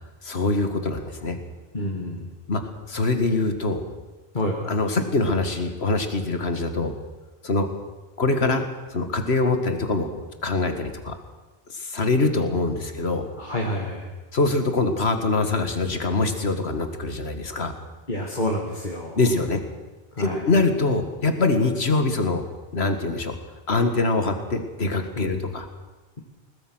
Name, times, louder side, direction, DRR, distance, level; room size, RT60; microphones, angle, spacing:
voice 1, 0.2-1.4 2.5-2.6 2.9-3.8 4.6-6.9 7.4-7.7 8.2-8.6 8.9-11.1 11.7-13.3 14.3-17.7 19.1-19.6 20.2-22.4 22.7-23.3 23.7-25.7, left 3 dB, 90° left, 7 dB, 2.2 m, -24 dB
voice 2, 1.7-2.3 4.3-4.7 13.4-14.1 18.1-19.2 20.2-20.4 25.2-25.5, left 1 dB, 50° left, -1 dB, 2.3 m, -28 dB
21.0 x 19.5 x 6.4 m, 1.2 s
omnidirectional pair, 1.0 m